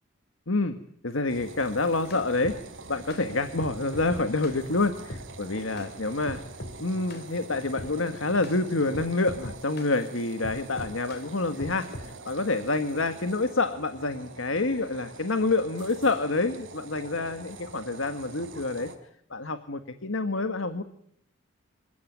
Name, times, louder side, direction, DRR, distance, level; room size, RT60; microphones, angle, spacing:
voice 1, 0.5-0.8 1.0-2.6 2.9-6.4 6.8-18.9 19.3-20.8, left 3 dB, 75° left, 9 dB, 1.7 m, -28 dB
sound 1, 1.3-19.0, right 3 dB, 65° right, 5.1 m, -45 dB
sound 2, 1.8-2.6 3.1-3.2 3.6-4.6 5.1-5.3 5.8-5.9 6.3-6.8 7.1-7.3 7.8-8.0 8.4-8.6 8.9-10.0 10.4-11.3 11.6-12.1, left 1 dB, 55° left, 3.1 m, -40 dB
27.5 x 16.5 x 9.4 m, 0.67 s
head